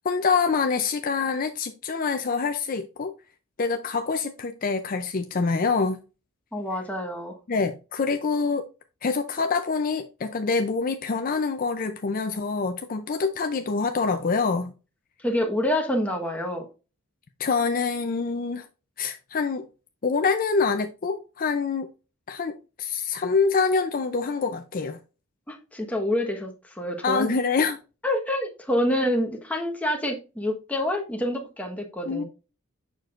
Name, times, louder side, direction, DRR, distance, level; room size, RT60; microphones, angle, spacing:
voice 1, 0.0-3.1 3.6-6.0 7.5-8.6 9.0-14.7 17.4-18.7 19.0-19.7 20.0-21.9 22.3-25.0 27.0-27.8 32.1-32.2, left 4 dB, 40° left, 0.5 m, -25 dB
voice 2, 6.5-7.3 15.2-16.7 25.5-27.3 28.0-32.2, left 1 dB, 5° left, 1.2 m, -27 dB
7.1 x 6.0 x 2.5 m
head